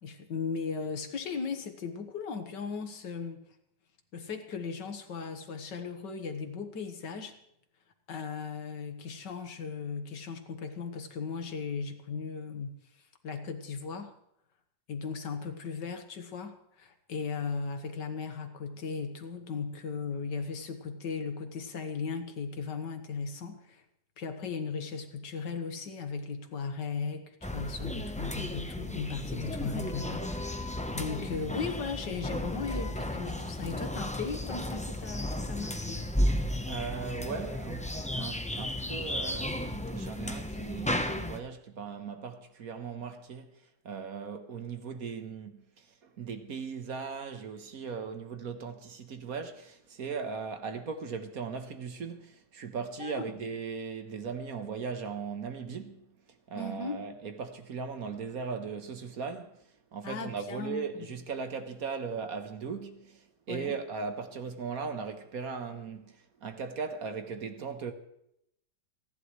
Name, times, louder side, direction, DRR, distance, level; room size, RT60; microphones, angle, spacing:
voice 1, 0.0-3.4 4.1-7.4 8.1-14.1 14.9-23.8 24.2-36.0 53.0-53.2 56.5-57.0 60.0-61.1 63.5-63.8, left 5 dB, 75° left, 2.0 m, -37 dB
sound 1, 27.4-41.4, left 1 dB, 10° left, 0.3 m, -34 dB
voice 2, 36.7-43.5 43.8-56.1 56.5-59.6 59.9-67.9, right 5 dB, 55° right, 1.4 m, -38 dB
29.0 x 11.0 x 3.2 m
omnidirectional pair, 1.9 m